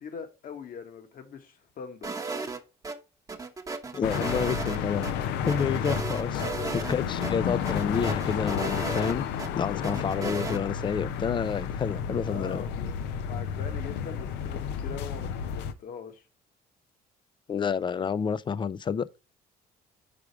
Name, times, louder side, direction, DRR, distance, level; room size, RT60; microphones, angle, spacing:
voice 1, 0.0-2.1 6.2-6.7 12.2-16.3, left 6 dB, 55° left, 1.4 m, -42 dB
sound 1, 2.0-3.0 3.3-5.1 5.5-7.0 7.2-7.3 7.6-9.5 9.8-10.6, right 4 dB, 20° right, 0.9 m, -35 dB
voice 2, 3.9-5.1 5.4-6.4 6.7-9.3 9.6-12.6 17.5-19.1, left 6 dB, 30° left, 0.4 m, -29 dB
sound 2, 4.0-15.7, left 8 dB, 90° left, 0.7 m, -31 dB
5.1 x 4.8 x 4.7 m
cardioid pair, 110°, 17 cm